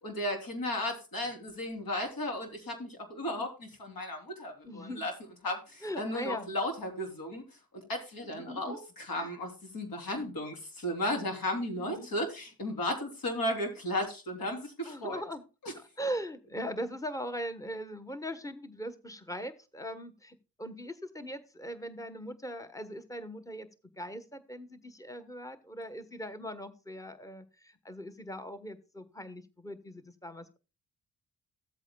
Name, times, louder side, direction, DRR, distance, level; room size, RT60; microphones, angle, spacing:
voice 1, 0.0-5.1 5.4-7.4 7.7-15.2 15.6-15.7, left 1 dB, 60° left, 3 dB, 3.4 m, -35 dB
voice 2, 4.6-5.0 5.8-6.5 8.2-8.8 9.2-9.3 10.1-10.3 11.7-12.1 14.9-15.4 16.0-23.7 24.0-30.6, equal, 10° left, 11 dB, 1.1 m, -40 dB
15.0 x 8.1 x 2.3 m, 0.31 s
cardioid pair, 65°, 38 cm